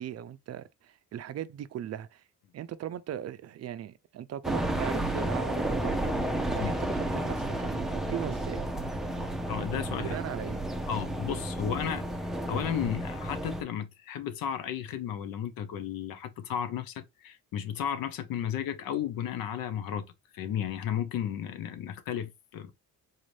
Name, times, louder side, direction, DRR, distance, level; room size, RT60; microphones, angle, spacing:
voice 1, 0.0-2.2 2.5-6.1 6.5-8.6 10.0-10.6, right 11 dB, 45° right, 0.5 m, -38 dB
sound 1, 4.4-13.6, right 1 dB, ahead, 0.6 m, -32 dB
voice 2, 9.5-10.1 10.9-20.1 20.3-22.7, left 9 dB, 80° left, 0.8 m, -34 dB
4.0 x 2.6 x 3.2 m
cardioid pair, 105°, 34 cm